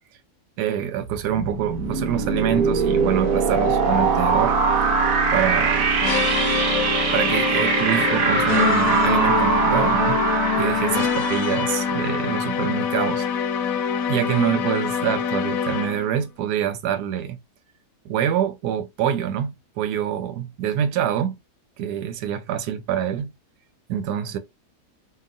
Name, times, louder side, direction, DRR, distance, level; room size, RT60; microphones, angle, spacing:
voice 1, 0.6-4.5 5.3-5.9 7.1-10.2 10.5-13.3 14.1-17.4 18.0-21.4 21.8-23.3 23.9-24.4, right 9 dB, 85° right, 1.2 m, -25 dB
sound 1, 1.1-12.8, right 4 dB, 65° right, 1.1 m, -22 dB
sound 2, 6.0-16.1, left 8 dB, 70° left, 0.9 m, -25 dB
2.9 x 2.4 x 2.5 m
omnidirectional pair, 1.7 m